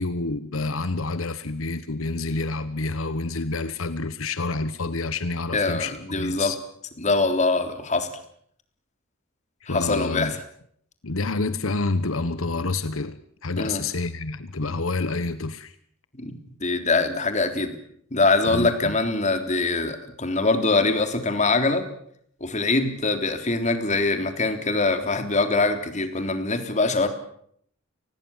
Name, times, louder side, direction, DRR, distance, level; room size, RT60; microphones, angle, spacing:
voice 1, 0.0-6.6 9.7-10.3 11.0-13.2 13.4-15.7 18.5-19.0, left 3 dB, 80° left, 13 dB, 1.2 m, -28 dB
voice 2, 5.5-6.5 7.0-8.1 9.7-10.4 13.6-13.8 16.1-17.8 18.1-21.8 22.4-27.1, left 3 dB, 35° left, 7 dB, 3.5 m, -23 dB
29.5 x 20.5 x 7.3 m, 0.66 s
head